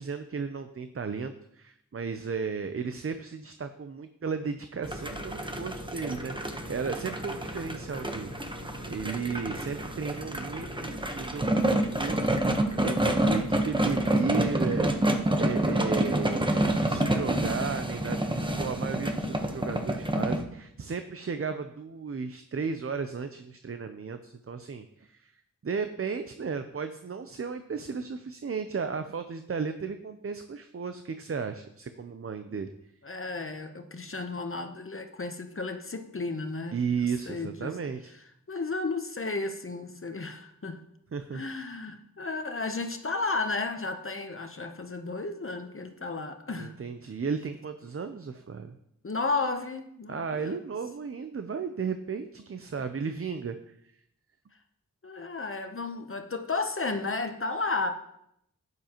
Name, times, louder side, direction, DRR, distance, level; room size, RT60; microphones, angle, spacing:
voice 1, 0.0-8.6 8.9-32.7 36.7-38.1 41.1-41.4 46.6-48.8 50.1-54.0, right 5 dB, 45° right, 8 dB, 0.6 m, -34 dB
sound 1, 4.8-20.4, right 1 dB, 15° right, 1.0 m, -28 dB
voice 2, 33.0-36.8 37.3-37.8 38.5-40.8 41.3-46.8 49.0-50.6 55.0-57.9, left 3 dB, 40° left, 6 dB, 0.9 m, -33 dB
12.0 x 9.4 x 3.0 m, 0.76 s
wide cardioid pair, 65°, 32 cm